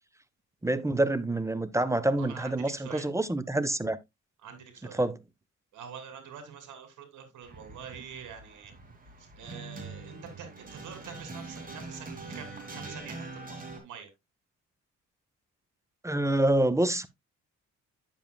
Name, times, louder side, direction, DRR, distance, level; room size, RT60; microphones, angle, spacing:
voice 1, 0.6-4.0 5.0-5.2 16.0-17.1, right 1 dB, 10° right, 0.5 m, -27 dB
voice 2, 2.2-3.0 4.4-5.0 5.7-8.7 9.2-14.1, right 7 dB, 75° right, 2.7 m, -45 dB
Warm Breeze, 7.4-13.8, right 3 dB, 30° right, 2.4 m, -43 dB
9.1 x 7.3 x 2.2 m
cardioid pair, 90°, 30 cm